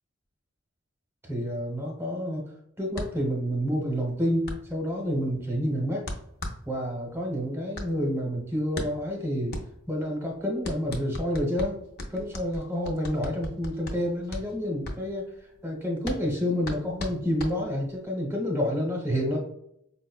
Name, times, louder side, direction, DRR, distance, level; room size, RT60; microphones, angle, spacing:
voice 1, 1.2-2.5 2.8-6.1 6.7-9.5 9.9-11.8 12.1-15.3 15.6-19.4, equal, 10° right, -1 dB, 0.8 m, -29 dB
sound 1, 2.9-18.0, left 1 dB, 50° left, 0.6 m, -38 dB
4.8 x 2.1 x 2.2 m, 0.73 s
head